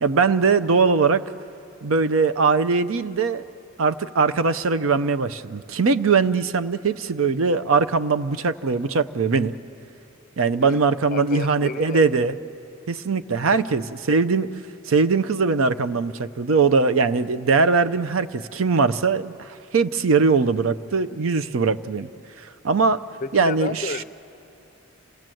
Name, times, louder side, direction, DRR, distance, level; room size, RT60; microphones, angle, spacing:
voice 1, 0.0-1.2 1.8-3.4 3.8-9.5 10.4-12.4 12.9-14.5 14.9-22.1 22.4-23.0 23.3-23.9, right 4 dB, 75° right, 11 dB, 0.6 m, -21 dB
voice 2, 11.1-12.2 13.5-13.6 23.2-24.0, left 4 dB, 40° left, 13 dB, 0.5 m, -32 dB
27.5 x 17.0 x 7.7 m, 2.7 s
head